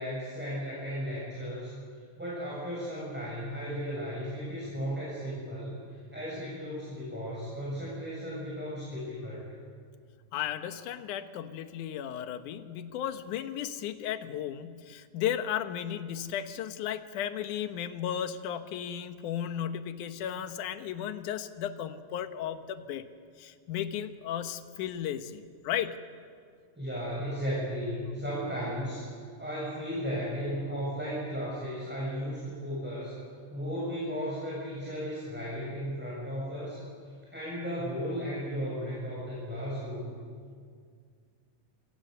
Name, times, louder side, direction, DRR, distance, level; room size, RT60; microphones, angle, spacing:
voice 1, 0.0-1.7 2.2-5.8 6.1-9.4 26.8-29.1 29.4-33.1 33.5-36.8 37.3-40.1, equal, 5° right, -6 dB, 7.3 m, -35 dB
voice 2, 10.3-23.0 23.4-26.0, left 10 dB, 70° left, 9 dB, 2.4 m, -35 dB
28.0 x 27.5 x 6.8 m, 2.1 s
omnidirectional pair, 4.1 m